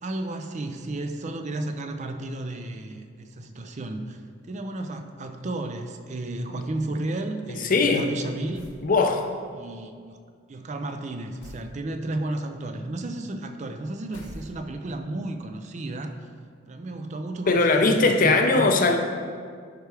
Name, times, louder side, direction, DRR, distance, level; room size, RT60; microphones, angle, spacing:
voice 1, 0.0-8.7 9.5-10.2 10.5-16.1 16.7-19.0, right 2 dB, 40° right, 7 dB, 0.4 m, -33 dB
voice 2, 7.6-8.1 8.8-9.3 17.5-19.0, left 3 dB, 45° left, 5 dB, 0.5 m, -20 dB
sound 1, 8.5-8.9 11.4-11.7 14.1-14.9, left 1 dB, 75° left, 0.9 m, -44 dB
11.5 x 4.6 x 3.4 m, 2.1 s
head